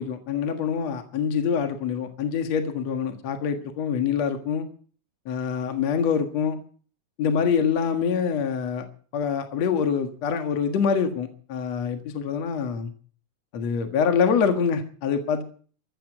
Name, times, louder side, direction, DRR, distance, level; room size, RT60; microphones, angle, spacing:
voice 1, 0.0-4.7 5.3-6.6 7.2-8.9 9.1-12.9 13.5-15.4, left 6 dB, 55° left, 7 dB, 2.6 m, -25 dB
14.5 x 13.5 x 7.3 m, 0.43 s
omnidirectional pair, 3.9 m